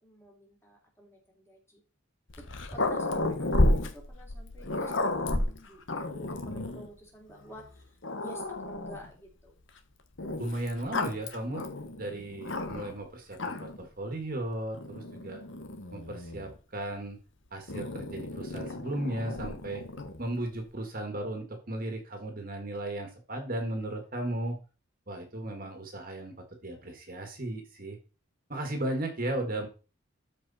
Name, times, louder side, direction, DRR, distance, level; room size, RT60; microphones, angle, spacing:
voice 1, 0.0-1.8 2.4-5.8 6.1-9.6, equal, 10° left, -1 dB, 3.1 m, -50 dB
Growling, 2.3-6.9 7.6-7.7 8.0-9.1 10.2-13.0 13.3-13.9 14.7-16.6 17.7-20.2, left 2 dB, 60° left, 1.2 m, -32 dB
voice 2, 10.4-11.6 12.0-15.4 15.9-17.2 17.5-19.8 20.2-24.6 25.1-28.0 28.5-29.7, right 1 dB, 45° right, 4 dB, 1.8 m, -35 dB
13.0 x 5.0 x 4.2 m, 0.34 s
head